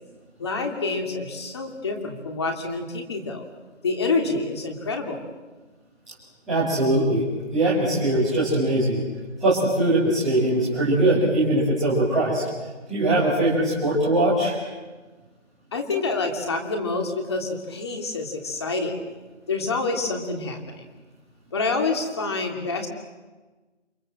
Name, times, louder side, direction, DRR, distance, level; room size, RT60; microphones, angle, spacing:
voice 1, 0.4-3.4 3.8-5.2 15.7-18.9 19.5-20.8 21.5-22.9, left 3 dB, 20° left, 3 dB, 2.9 m, -27 dB
voice 2, 6.5-7.2 7.5-9.0 9.4-12.4 12.9-14.6, right 1 dB, ahead, -26 dB, 1.0 m, -21 dB
29.0 x 27.0 x 7.6 m, 1.2 s
figure-of-eight pair, 175°, 36 cm